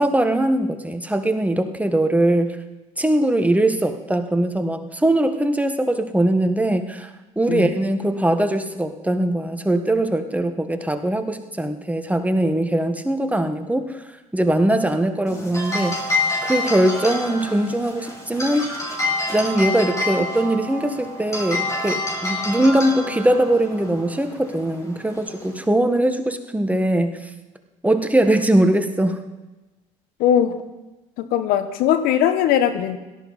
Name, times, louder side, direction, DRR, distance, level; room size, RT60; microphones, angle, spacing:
voice 1, 0.0-2.6 3.0-7.1 7.4-13.9 14.3-16.1 16.4-18.8 19.3-27.1 27.8-29.2, right 1 dB, 10° right, 7 dB, 1.5 m, -21 dB
sound 1, 15.3-25.7, left 2 dB, 20° left, 5.9 m, -28 dB
voice 2, 30.2-30.6 31.2-33.0, left 10 dB, 70° left, 10 dB, 1.1 m, -19 dB
17.5 x 13.0 x 4.1 m, 1.1 s
hypercardioid pair, 65°, 16 cm